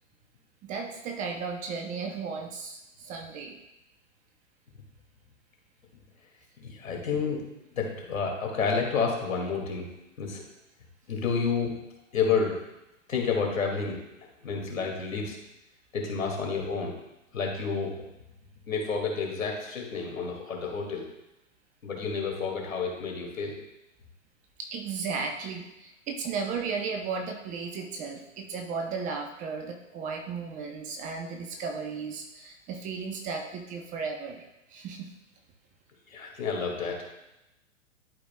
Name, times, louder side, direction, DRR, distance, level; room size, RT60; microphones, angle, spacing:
voice 1, 0.6-3.6 24.6-34.4 34.7-35.1, right 5 dB, 20° right, 4 dB, 0.6 m, -35 dB
voice 2, 6.6-7.4 7.8-9.9 10.2-10.4 11.1-11.7 12.1-12.6 13.1-14.0 14.4-15.4 15.9-16.9 17.3-18.0 18.7-21.1 21.8-23.5 36.1-37.0, left 5 dB, 85° left, 0 dB, 2.2 m, -29 dB
11.5 x 5.0 x 2.2 m, 0.92 s
hypercardioid pair, 125°, 39 cm